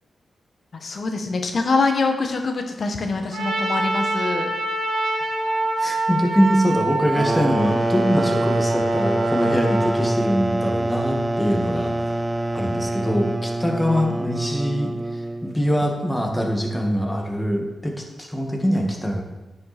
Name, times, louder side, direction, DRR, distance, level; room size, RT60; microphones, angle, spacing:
voice 1, 0.7-4.5, left 3 dB, 60° left, 5 dB, 1.2 m, -24 dB
Trumpet, 3.3-9.9, right 2 dB, 90° right, 1.5 m, -26 dB
voice 2, 5.8-12.1 12.5-19.2, equal, 10° left, 1 dB, 1.9 m, -23 dB
sound 1, 7.1-15.6, right 2 dB, 30° right, 0.5 m, -25 dB
9.5 x 5.7 x 4.3 m, 1.1 s
supercardioid pair, 50°, 0 cm